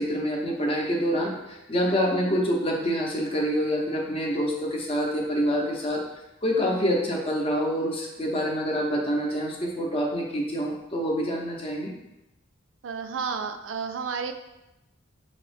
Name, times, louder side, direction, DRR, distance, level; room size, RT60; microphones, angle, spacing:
voice 1, 0.0-6.0 6.4-11.9, equal, 30° left, -1 dB, 0.6 m, -26 dB
voice 2, 12.8-14.3, right 5 dB, 85° right, 8 dB, 0.4 m, -31 dB
5.6 x 2.1 x 3.1 m, 0.92 s
head